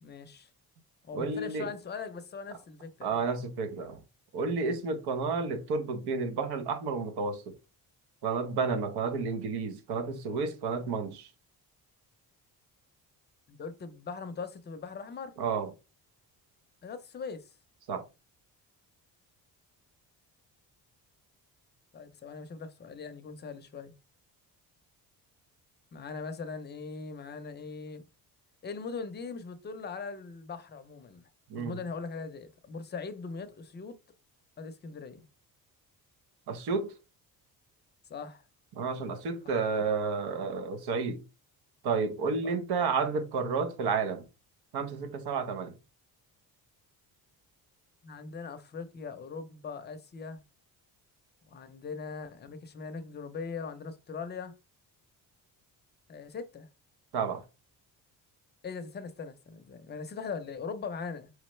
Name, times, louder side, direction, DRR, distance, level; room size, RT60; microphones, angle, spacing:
voice 1, 0.0-0.5 1.0-3.2 4.6-4.8 13.5-15.3 16.8-17.4 21.9-23.9 25.9-28.0 28.6-31.3 31.6-34.0 34.6-35.2 38.1-38.4 42.4-42.6 48.0-50.4 51.5-54.5 56.1-56.7 58.6-61.3, left 5 dB, 25° left, 0.5 m, -40 dB
voice 2, 1.1-1.7 3.0-4.0 4.3-7.5 8.2-11.3 15.4-15.7 17.9-18.0 31.5-31.8 36.5-36.9 38.7-41.2 41.8-44.3 44.7-45.7 57.1-57.4, right 4 dB, 80° right, 1.0 m, -31 dB
4.8 x 3.2 x 3.1 m
cardioid pair, 165°, 38 cm